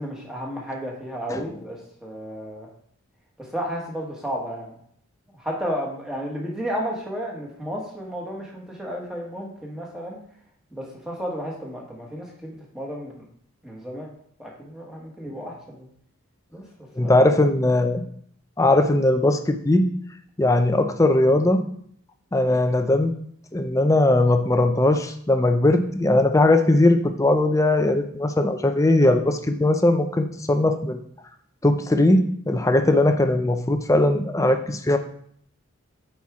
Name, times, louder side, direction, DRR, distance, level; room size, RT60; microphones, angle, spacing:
voice 1, 0.0-2.7 3.4-4.7 5.3-10.2 10.7-13.2 13.6-14.1 14.4-15.9 16.5-16.6 17.0-17.2, equal, 5° right, -2 dB, 1.5 m, -32 dB
voice 2, 17.0-18.0 18.6-19.9 20.4-21.6 22.3-23.1 23.5-31.0 31.6-35.0, left 1 dB, 15° left, 7 dB, 0.5 m, -19 dB
8.4 x 4.5 x 3.6 m, 0.64 s
head